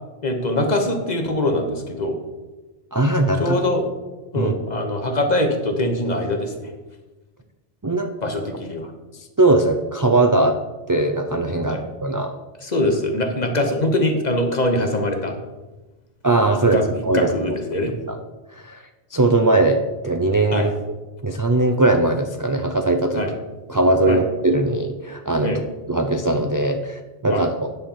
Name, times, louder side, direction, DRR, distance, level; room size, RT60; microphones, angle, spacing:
voice 1, 0.2-2.2 3.4-3.9 4.3-6.7 8.2-8.9 11.7-11.8 12.6-15.3 16.7-16.9 17.1-17.9 20.5-20.7 23.1-23.3 24.1-24.2 25.4-25.6 27.3-27.4, left 1 dB, 40° left, 4 dB, 1.2 m, -22 dB
voice 2, 2.9-3.6 4.4-4.5 7.8-8.1 9.4-10.6 10.9-12.3 16.2-16.8 17.0-17.5 17.8-18.2 18.6-18.8 19.1-20.7 21.2-23.3 23.7-25.6 25.9-27.7, right 2 dB, 35° right, 5 dB, 0.3 m, -20 dB
10.0 x 4.3 x 7.3 m, 1.2 s
omnidirectional pair, 1.2 m